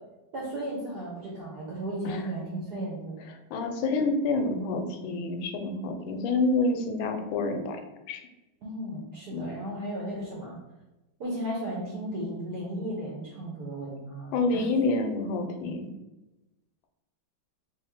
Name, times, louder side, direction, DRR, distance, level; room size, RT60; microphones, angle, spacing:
voice 1, 0.3-3.1 8.6-10.6 11.2-14.4, right 1 dB, 60° right, -5 dB, 1.3 m, -35 dB
voice 2, 3.3-7.8 8.1-8.2 9.3-9.5 14.3-15.9, left 3 dB, 90° left, 5 dB, 1.4 m, -28 dB
3.3 x 3.2 x 3.5 m, 1.0 s
omnidirectional pair, 2.1 m